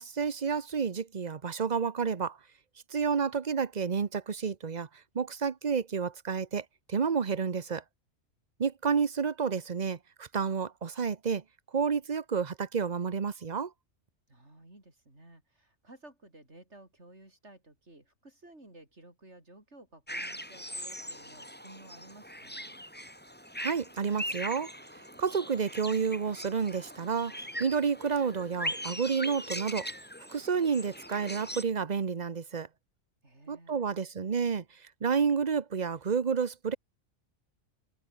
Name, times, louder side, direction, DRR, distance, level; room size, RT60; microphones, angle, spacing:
voice 1, 0.0-2.4 2.9-4.9 5.1-7.8 8.6-11.4 11.7-13.7 23.6-24.7 25.2-29.9 30.3-32.7 33.5-34.6 35.0-36.8, right 6 dB, 35° right, 0.9 m, -30 dB
voice 2, 14.3-22.8 33.2-34.0, right 1 dB, 55° right, 7.2 m, -55 dB
sound 1, 20.1-31.6, equal, 5° left, 6.9 m, -40 dB
omnidirectional pair, 1.4 m